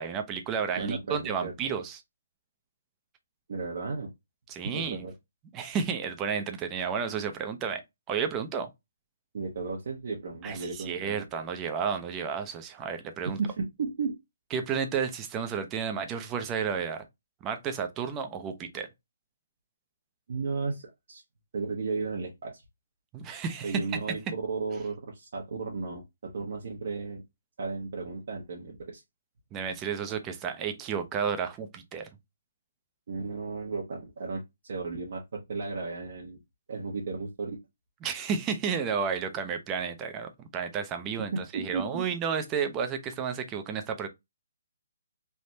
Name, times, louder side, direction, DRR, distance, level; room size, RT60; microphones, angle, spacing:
voice 1, 0.0-2.0 4.5-5.0 5.5-7.8 8.1-8.7 10.4-13.4 14.5-17.1 17.4-18.9 23.1-23.8 29.5-32.1 38.0-44.1, right 6 dB, 20° right, 0.5 m, -32 dB
voice 2, 0.7-1.5 3.5-4.1 4.6-5.1 9.3-11.2 13.3-14.2 20.3-21.2 21.5-22.6 23.6-24.2 24.5-27.2 27.6-29.0 33.1-36.4 36.7-37.6 41.3-42.0, right 4 dB, 60° right, 0.8 m, -34 dB
3.3 x 2.0 x 2.7 m
hypercardioid pair, 150°, 0 cm